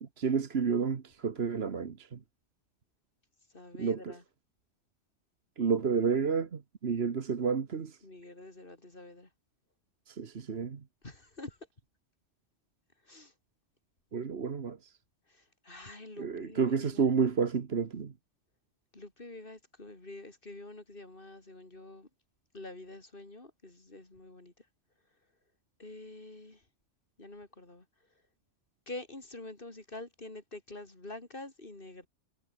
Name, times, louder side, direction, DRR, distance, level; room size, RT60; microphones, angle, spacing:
voice 1, 0.0-2.2 3.8-4.1 5.6-8.0 10.1-10.8 14.1-14.9 16.2-18.1, right 6 dB, 60° right, 1.5 m, -30 dB
voice 2, 3.5-4.2 8.0-9.3 11.0-11.6 13.0-13.3 15.3-17.1 18.9-22.1 22.5-24.5 25.8-26.6 27.2-27.9 28.9-32.1, left 2 dB, 45° left, 3.5 m, -47 dB
omnidirectional pair, 1.2 m